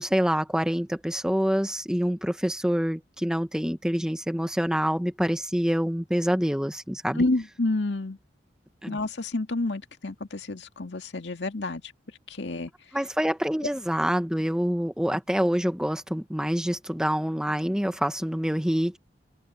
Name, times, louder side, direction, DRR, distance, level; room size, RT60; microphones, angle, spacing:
voice 1, 0.0-7.2 8.8-9.0 12.9-19.0, equal, 5° right, 1.2 m, -26 dB
voice 2, 7.2-8.2 8.9-11.8 12.3-12.7, left 2 dB, 75° left, 2.1 m, -29 dB
head